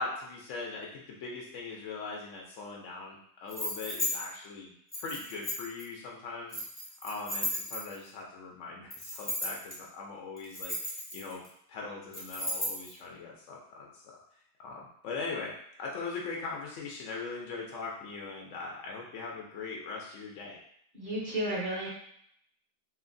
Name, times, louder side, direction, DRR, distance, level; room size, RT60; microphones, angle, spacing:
voice 1, 0.0-4.7 5.0-6.6 7.0-14.0 14.6-15.5 15.8-20.6, left 4 dB, 80° left, -2 dB, 0.6 m, -40 dB
sound 1, 3.5-4.2 4.9-5.8 6.5-8.1 8.9-9.7 10.4-11.5 12.1-12.9, left 1 dB, 15° left, 0.4 m, -34 dB
voice 2, 20.9-21.9, right 1 dB, 40° right, -6 dB, 0.8 m, -32 dB
2.9 x 2.8 x 2.5 m, 0.67 s
omnidirectional pair, 1.9 m